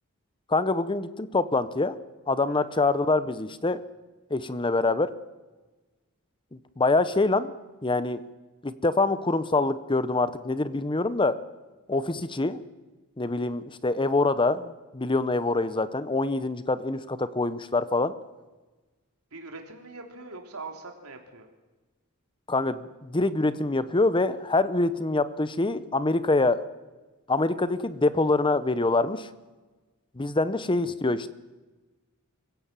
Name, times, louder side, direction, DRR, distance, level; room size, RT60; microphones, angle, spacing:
voice 1, 0.5-2.0 2.3-3.8 4.3-5.1 6.8-7.5 7.8-8.2 8.6-11.3 11.9-12.6 13.2-18.1 22.5-26.6 27.3-29.3 30.2-31.3, left 2 dB, 20° left, 14 dB, 0.8 m, -25 dB
voice 2, 19.3-21.5, right 3 dB, 75° right, 3 dB, 3.3 m, -42 dB
25.0 x 16.5 x 7.5 m, 1.2 s
head